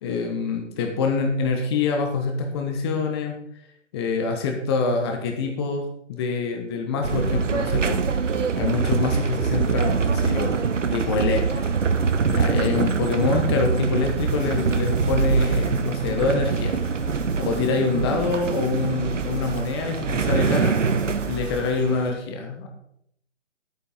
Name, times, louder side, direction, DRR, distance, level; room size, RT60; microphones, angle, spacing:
voice 1, 0.0-3.4 3.9-8.0 8.6-10.5 10.9-11.8 12.3-16.8 17.4-20.8 21.3-22.7, left 4 dB, 20° left, 3 dB, 1.1 m, -25 dB
sound 1, 7.0-22.1, right 5 dB, 75° right, 1.0 m, -24 dB
sound 2, 14.0-21.9, equal, 15° right, 2.1 m, -36 dB
9.8 x 8.8 x 4.0 m, 0.73 s
figure-of-eight pair, 145°, 37 cm